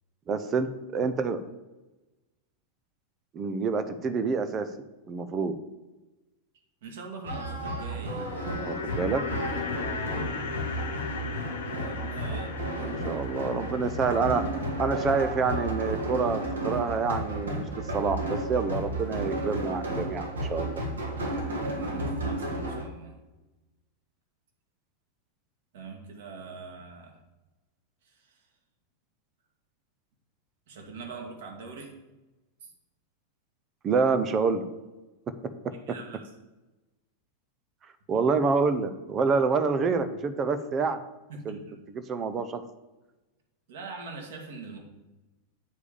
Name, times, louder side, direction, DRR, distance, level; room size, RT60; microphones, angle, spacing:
voice 1, 0.3-1.4 3.3-4.7 5.1-5.5 8.6-9.2 10.1-10.2 12.8-14.5 14.8-17.7 17.9-20.8 33.8-34.6 38.1-41.0 41.5-41.6 41.9-42.6, right 4 dB, 25° right, 11 dB, 0.8 m, -27 dB
voice 2, 6.8-8.8 9.6-9.9 11.5-13.2 21.6-23.2 25.7-27.2 28.0-28.4 30.7-32.0 32.6-32.7 35.7-36.2 41.3-41.6 43.7-44.8, right 4 dB, 55° right, 2 dB, 1.9 m, -43 dB
sound 1, 7.2-22.8, right 1 dB, 70° right, 2.1 m, -33 dB
sound 2, 8.0-18.2 18.5-18.6, left 6 dB, 55° left, 1.2 m, -38 dB
8.5 x 4.8 x 7.0 m, 1.1 s
figure-of-eight pair, 90°, 0 cm